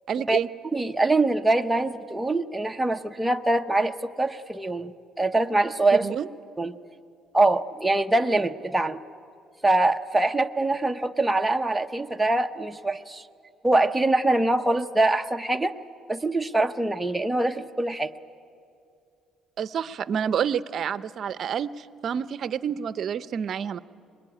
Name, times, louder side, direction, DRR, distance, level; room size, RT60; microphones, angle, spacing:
voice 1, 0.1-0.5 6.0-6.3 19.6-23.8, right 8 dB, 50° right, 15 dB, 0.7 m, -28 dB
voice 2, 0.7-6.1 6.6-6.7 7.3-9.0 9.6-13.2 13.6-15.7 16.1-18.1, right 2 dB, 10° right, 6 dB, 0.8 m, -24 dB
25.0 x 21.5 x 9.9 m, 2.5 s
cardioid pair, 115°, 0 cm